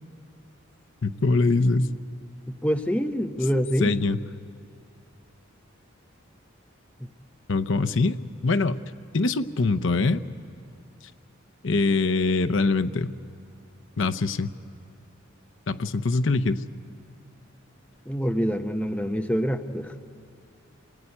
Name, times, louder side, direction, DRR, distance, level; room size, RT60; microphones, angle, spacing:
voice 1, 1.0-1.9 3.8-4.2 7.5-8.8 9.1-10.2 11.6-13.1 14.0-14.5 15.7-16.6, left 3 dB, 65° left, 9 dB, 0.7 m, -23 dB
voice 2, 2.5-3.9 7.0-7.1 18.1-20.0, equal, 5° left, 5 dB, 0.8 m, -26 dB
28.0 x 20.5 x 9.8 m, 2.4 s
head